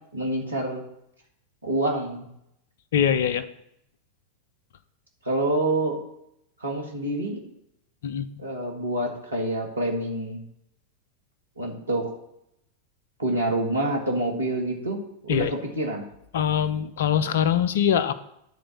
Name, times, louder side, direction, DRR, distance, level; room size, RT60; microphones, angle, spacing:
voice 1, 0.1-0.8 1.6-2.3 5.2-6.0 6.6-7.4 8.4-10.4 11.6-12.1 13.2-16.0, right 1 dB, 80° right, 0 dB, 2.0 m, -27 dB
voice 2, 2.9-3.4 8.0-8.5 15.3-15.5 16.3-18.1, left 9 dB, 60° left, 14 dB, 0.6 m, -23 dB
10.5 x 4.3 x 6.8 m, 0.78 s
figure-of-eight pair, 90°, 0 cm